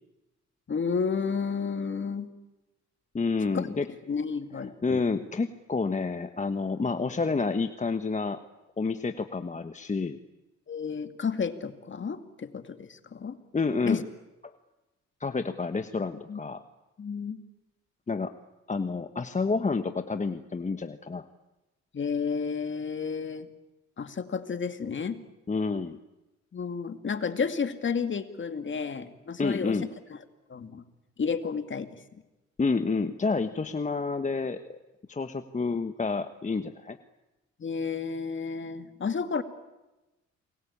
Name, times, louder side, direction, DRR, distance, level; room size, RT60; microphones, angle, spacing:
voice 1, 0.7-2.3 3.5-3.7 4.1-5.0 10.7-13.4 13.8-14.0 16.3-16.4 17.0-17.4 21.9-23.5 24.0-25.2 26.5-29.8 30.5-30.8 31.2-32.0 37.6-39.4, left 5 dB, 40° left, 9 dB, 2.3 m, -31 dB
voice 2, 3.1-3.9 4.8-8.4 8.8-10.2 13.5-14.0 15.2-16.6 18.1-18.3 18.7-21.2 25.5-26.0 29.4-29.9 32.6-34.8 35.1-37.0, left 4 dB, 25° left, 8 dB, 1.3 m, -29 dB
29.0 x 21.5 x 8.6 m, 1.0 s
cardioid pair, 90°, 30 cm